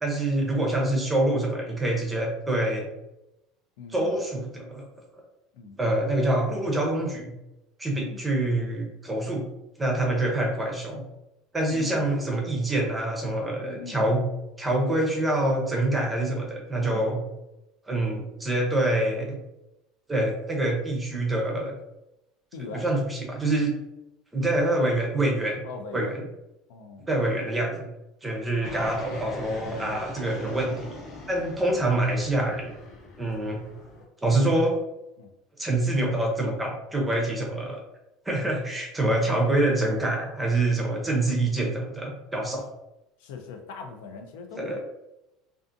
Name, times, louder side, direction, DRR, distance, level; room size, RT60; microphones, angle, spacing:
voice 1, 0.0-2.9 3.9-4.8 5.8-7.3 7.8-9.4 9.8-11.0 11.5-14.2 14.6-17.2 17.9-19.4 20.1-21.7 22.7-23.7 24.3-25.6 25.9-26.2 27.1-27.8 28.2-30.7 31.3-32.6 33.2-33.6 34.2-34.7 35.6-37.8 38.3-42.6 44.6-44.8, right 1 dB, 10° right, 0 dB, 0.6 m, -26 dB
voice 2, 3.8-4.1 5.5-6.0 7.9-8.2 11.7-12.1 13.5-14.2 16.8-17.1 22.5-22.8 25.6-26.1 26.7-27.1 35.2-35.3 43.2-44.8, left 5 dB, 85° left, 4 dB, 0.4 m, -41 dB
Fixed-wing aircraft airplane, 28.6-34.0, left 2 dB, 45° left, 0.7 m, -41 dB
2.5 x 2.4 x 2.5 m, 0.90 s
cardioid pair, 155°, 0 cm